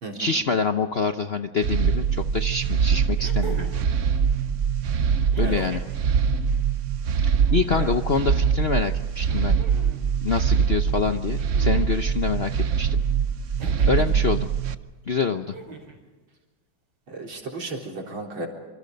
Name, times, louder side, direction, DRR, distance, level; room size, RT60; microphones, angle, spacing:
voice 1, 0.1-3.6 5.4-5.8 7.2-9.6 10.2-13.0 13.9-14.5 15.1-15.6, left 5 dB, 60° left, 8 dB, 0.6 m, -26 dB
sound 1, 1.6-14.7, right 7 dB, 55° right, 0.9 m, -23 dB
sound 2, 2.1-2.2 3.2-3.9 5.3-6.0 7.3-8.0 9.2-10.0 11.4-12.1 13.6-14.1 15.4-16.0 17.3-17.4, right 2 dB, 70° right, 5.1 m, -41 dB
voice 2, 17.1-18.5, right 2 dB, 85° right, 0 dB, 4.7 m, -34 dB
26.5 x 26.0 x 5.3 m, 1.3 s
omnidirectional pair, 2.2 m